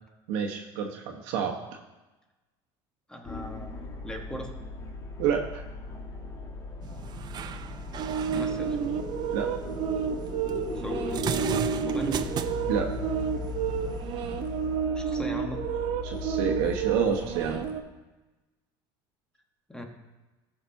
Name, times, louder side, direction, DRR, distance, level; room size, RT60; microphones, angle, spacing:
voice 1, 0.3-1.6 5.2-5.6 9.3-9.5 12.7-12.9 16.0-17.6, right 7 dB, 80° right, 2 dB, 1.1 m, -28 dB
voice 2, 3.1-3.7 4.0-4.6 8.3-8.8 10.7-12.2 14.9-15.7 19.7-19.8, equal, 5° left, 3 dB, 1.3 m, -38 dB
sound 1, 3.2-17.7, left 4 dB, 30° left, 1.2 m, -38 dB
sound 2, 6.8-14.8, right 9 dB, 35° right, 0.4 m, -38 dB
sound 3, 8.0-17.8, right 8 dB, 50° right, 0.8 m, -31 dB
14.5 x 5.9 x 2.7 m, 1.1 s
supercardioid pair, 115°, 12 cm